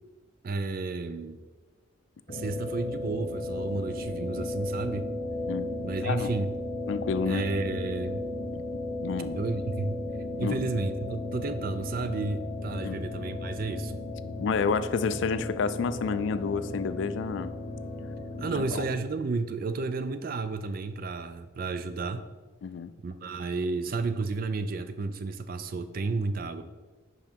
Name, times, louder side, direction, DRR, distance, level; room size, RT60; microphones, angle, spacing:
voice 1, 0.4-1.4 2.3-5.1 5.8-6.5 7.3-8.3 9.4-10.0 10.4-14.0 18.4-22.3 23.0-26.6, right 3 dB, 45° right, 10 dB, 0.4 m, -32 dB
sound 1, 2.3-19.0, left 2 dB, 35° left, 0.8 m, -35 dB
voice 2, 6.9-7.5 8.5-8.6 9.0-9.4 10.4-10.7 12.8-13.0 14.4-17.5 18.6-18.9 22.6-22.9, left 5 dB, 60° left, 13 dB, 0.3 m, -30 dB
5.5 x 4.9 x 4.4 m, 1.3 s
head